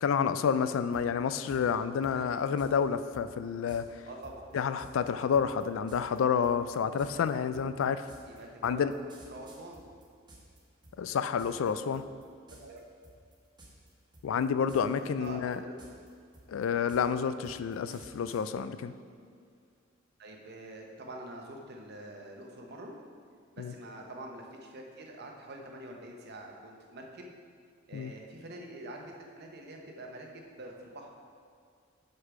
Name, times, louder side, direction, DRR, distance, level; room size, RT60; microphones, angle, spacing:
voice 1, 0.0-4.0 4.5-8.1 8.6-8.9 11.0-12.0 14.2-15.6 16.5-18.9 23.6-23.7 27.9-28.1, left 7 dB, 70° left, 13 dB, 0.3 m, -29 dB
sound 1, 0.9-1.0 1.5-1.6 2.0-2.7 3.1-3.3 3.7-3.8 4.2-10.6 10.8-11.7 11.9-12.2 12.5-12.8 13.0-13.9 14.1-15.0 15.2-18.4, right 1 dB, 20° right, 1.2 m, -53 dB
voice 2, 4.1-4.5 8.3-8.8 9.3-9.8 12.6-12.8 14.9-15.8 20.2-23.0 23.6-27.3 27.9-31.1, right 1 dB, 55° right, 1 dB, 0.9 m, -46 dB
6.6 x 5.6 x 4.7 m, 2.1 s
head